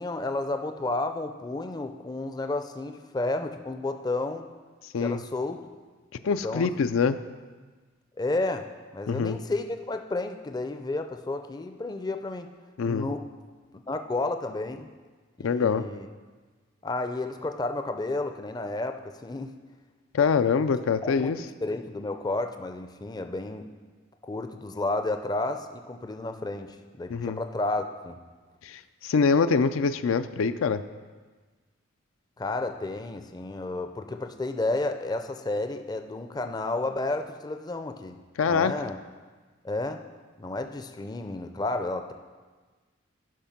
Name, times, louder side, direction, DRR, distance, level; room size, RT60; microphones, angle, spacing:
voice 1, 0.0-4.5 5.0-5.6 6.4-6.9 8.2-8.7 8.9-12.5 12.8-13.3 13.9-14.9 15.4-16.1 16.8-19.6 21.0-21.3 21.6-23.7 24.2-28.2 32.4-38.2 38.5-39.0 39.6-40.0 40.4-42.1, left 2 dB, 20° left, 7 dB, 0.4 m, -31 dB
voice 2, 6.2-7.2 9.1-9.4 12.8-13.1 15.4-15.8 20.1-21.4 27.1-27.4 28.6-30.8 38.4-38.7, left 5 dB, 90° left, 11 dB, 0.4 m, -24 dB
11.0 x 5.2 x 5.8 m, 1.4 s
head